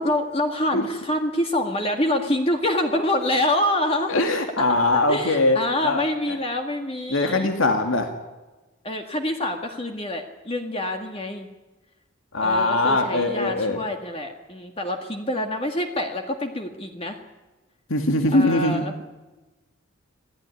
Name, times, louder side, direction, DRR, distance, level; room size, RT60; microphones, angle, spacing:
voice 1, 0.0-4.1 5.1-7.5 8.8-11.5 12.4-17.2 18.3-18.9, left 1 dB, 30° left, 4 dB, 1.9 m, -26 dB
voice 2, 4.1-6.0 6.3-6.4 7.1-8.1 12.3-13.8 17.9-18.8, left 2 dB, 80° left, 5 dB, 2.4 m, -21 dB
26.5 x 16.5 x 10.0 m, 1.2 s
head